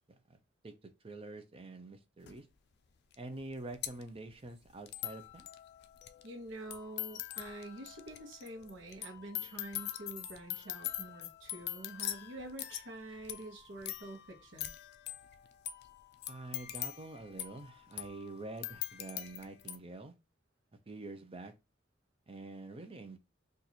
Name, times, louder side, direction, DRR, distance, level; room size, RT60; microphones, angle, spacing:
voice 1, 1.0-2.5 3.2-5.5 16.3-20.1 20.9-21.5 22.3-23.2, right 2 dB, 30° right, 0.6 m, -46 dB
sound 1, 2.3-2.4 3.1-3.2 3.4-19.8, left 13 dB, 55° left, 0.4 m, -43 dB
voice 2, 6.2-14.7, right 2 dB, 70° right, 1.0 m, -47 dB
2.9 x 2.6 x 4.0 m
head